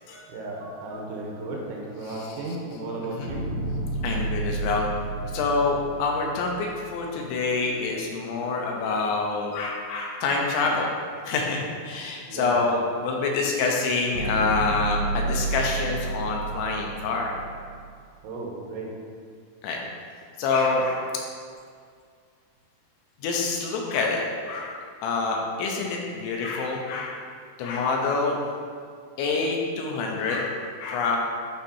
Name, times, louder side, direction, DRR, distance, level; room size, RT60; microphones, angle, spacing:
voice 1, 0.1-3.5 12.3-12.6 18.2-19.0, right 2 dB, 80° right, -2 dB, 3.1 m, -34 dB
voice 2, 2.0-2.6 3.0-3.3 4.0-4.9 5.3-10.9 11.2-17.3 19.6-19.8 20.4-21.1 23.2-27.2 27.6-28.4 29.2-31.2, left 4 dB, 80° left, 0 dB, 3.1 m, -26 dB
sound 1, 3.3-7.6 14.1-17.9, right 3 dB, 55° right, 1.6 m, -31 dB
11.0 x 4.2 x 2.7 m, 2.1 s
omnidirectional pair, 5.6 m